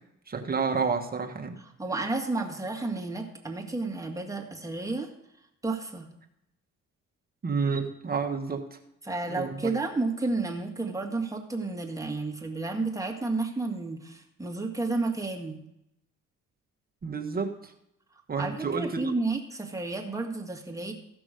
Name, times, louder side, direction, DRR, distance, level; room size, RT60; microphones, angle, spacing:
voice 1, 0.3-1.6 7.4-8.8 9.3-9.7 17.0-17.7 18.3-19.1, right 5 dB, 30° right, 3 dB, 1.4 m, -30 dB
voice 2, 1.8-5.1 5.6-6.1 9.0-15.6 18.4-20.9, right 3 dB, 10° right, 0 dB, 1.9 m, -31 dB
15.0 x 6.2 x 5.1 m, 0.82 s
cardioid pair, 90°, 30 cm